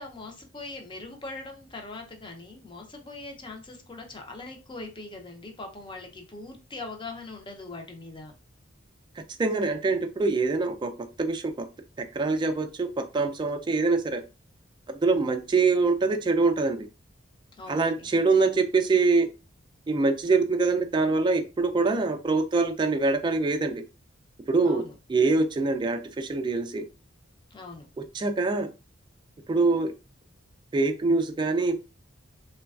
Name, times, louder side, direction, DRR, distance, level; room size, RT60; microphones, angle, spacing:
voice 1, 0.0-8.3 17.6-18.1 24.6-24.9 27.5-27.9, left 2 dB, 25° left, 3 dB, 0.5 m, -41 dB
voice 2, 9.4-10.9 11.2-11.7 12.1-14.2 14.9-16.9 17.7-19.3 19.9-23.8 24.5-24.8 25.1-26.8 28.1-28.7 29.5-29.9 30.7-31.8, right 3 dB, 25° right, 6 dB, 0.3 m, -24 dB
3.1 x 2.2 x 2.3 m, 0.30 s
head